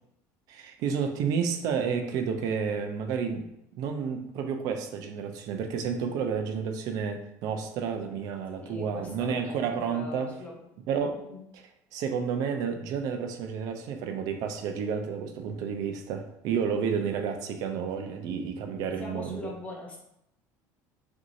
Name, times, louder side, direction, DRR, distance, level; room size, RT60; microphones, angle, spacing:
voice 1, 0.5-3.5 3.8-10.3 10.9-11.2 11.5-11.6 11.9-19.5, right 6 dB, 55° right, 5 dB, 0.5 m, -31 dB
voice 2, 8.6-10.7 11.2-11.4 18.6-20.0, left 2 dB, 15° left, -2 dB, 0.7 m, -42 dB
5.9 x 2.8 x 2.6 m, 0.79 s
cardioid pair, 170°, 8 cm